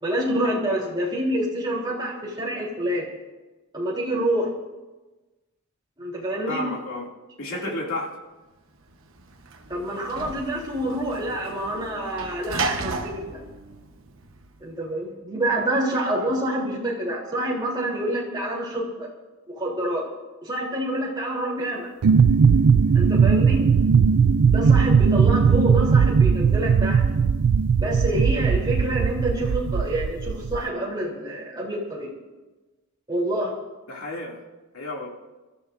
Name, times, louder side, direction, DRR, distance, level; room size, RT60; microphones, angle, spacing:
voice 1, 0.0-3.1 3.7-4.5 6.0-6.6 7.6-7.7 9.7-13.4 14.6-19.1 19.5-20.0 20.4-21.9 22.9-23.7 24.5-27.0 27.8-32.1 33.1-33.5, right 1 dB, 20° right, -4 dB, 3.4 m, -27 dB
voice 2, 6.5-7.1 7.4-8.1 33.9-34.4 34.7-35.1, left 1 dB, 70° left, -2 dB, 2.7 m, -31 dB
Sliding door / Slam, 8.8-14.7, right 3 dB, 60° right, 1.1 m, -34 dB
sound 1, 22.0-30.6, right 6 dB, 85° right, 0.4 m, -18 dB
27.5 x 13.5 x 2.7 m, 1.2 s
head